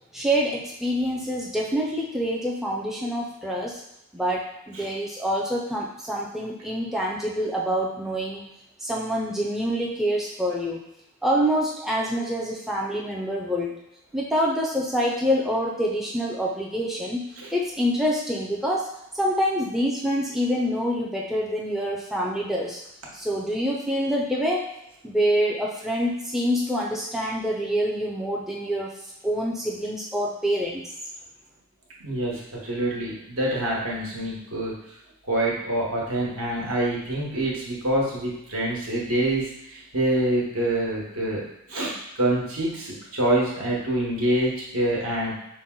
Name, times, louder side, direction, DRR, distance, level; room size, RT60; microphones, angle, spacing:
voice 1, 0.1-3.8 4.1-8.4 8.8-10.8 11.2-13.8 14.1-18.9 19.1-22.8 23.1-24.7 25.0-28.9 29.2-30.8, equal, ahead, -4 dB, 0.4 m, -26 dB
voice 2, 32.0-34.8 35.3-41.4 41.7-45.4, right 1 dB, 70° right, -4 dB, 1.2 m, -26 dB
5.3 x 2.1 x 3.7 m, 0.85 s
head